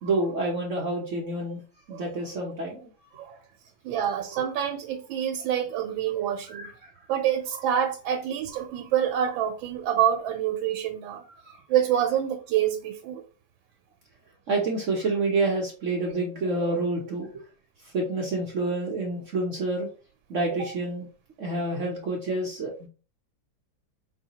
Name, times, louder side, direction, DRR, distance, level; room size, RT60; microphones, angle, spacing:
voice 1, 0.0-1.6 1.9-2.9 6.4-6.9 11.4-11.6 14.5-17.3 17.8-19.9 20.3-21.1 21.4-22.9, right 2 dB, 55° right, 0.9 m, -28 dB
voice 2, 3.8-6.7 7.1-11.2 11.7-13.2 16.6-16.7 20.6-20.7 22.3-22.4, right 10 dB, 80° right, 1.3 m, -27 dB
4.8 x 2.7 x 2.8 m
omnidirectional pair, 2.1 m